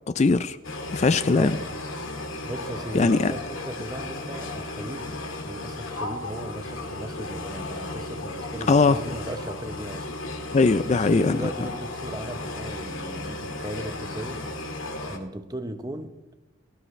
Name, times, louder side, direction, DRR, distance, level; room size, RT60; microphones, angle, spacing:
voice 1, 0.2-0.6 0.9-1.6 2.9-3.3 8.7-9.0 10.5-11.5, left 3 dB, 35° left, 0.4 m, -20 dB
sound 1, 0.6-15.2, left 2 dB, 75° left, 2.1 m, -35 dB
voice 2, 1.3-1.7 2.4-10.1 10.4-10.6 10.9-14.8 15.1-16.3, right 1 dB, 20° right, 0.8 m, -37 dB
19.0 x 13.5 x 3.2 m
head